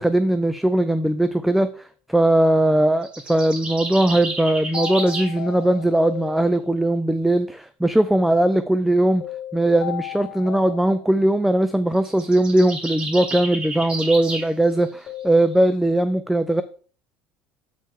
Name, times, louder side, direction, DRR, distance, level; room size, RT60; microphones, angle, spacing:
voice 1, 0.0-9.2 9.5-16.6, right 1 dB, 5° right, 12 dB, 0.4 m, -19 dB
sound 1, 3.0-5.3 12.0-14.5, right 2 dB, 25° right, 3.1 m, -31 dB
sound 2, 4.7-7.0 9.2-11.5 15.1-15.3, left 13 dB, 55° left, 2.7 m, -35 dB
8.4 x 5.3 x 3.6 m, 0.42 s
supercardioid pair, 110°, 4 cm